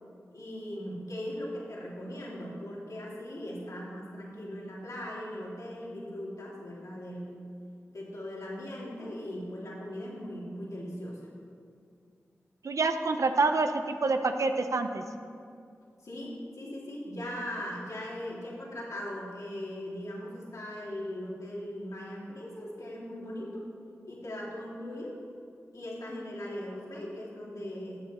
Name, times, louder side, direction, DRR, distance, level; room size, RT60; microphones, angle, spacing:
voice 1, 0.3-7.4 7.9-11.3 16.0-16.3 16.6-23.6 24.1-25.1 25.7-28.0, left 1 dB, 70° left, -5 dB, 2.8 m, -39 dB
voice 2, 12.6-15.0, right 3 dB, 70° right, 7 dB, 0.7 m, -27 dB
13.0 x 7.8 x 4.3 m, 2.3 s
cardioid pair, 45°, 6 cm